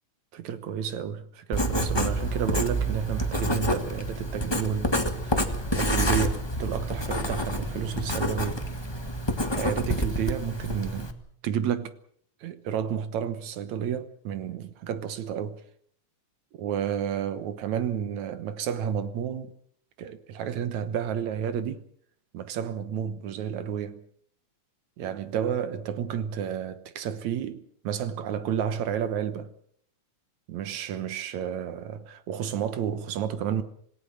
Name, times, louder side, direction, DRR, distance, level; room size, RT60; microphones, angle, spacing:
voice 1, 0.3-8.6 9.5-11.1 11.4-12.0 12.4-15.6 16.5-19.6 20.0-21.9 22.3-24.0 25.0-29.5 30.5-33.6, right 8 dB, 75° right, 2.5 m, -31 dB
Writing, 1.5-11.1, equal, 15° left, 0.8 m, -28 dB
26.5 x 17.5 x 6.4 m
omnidirectional pair, 3.4 m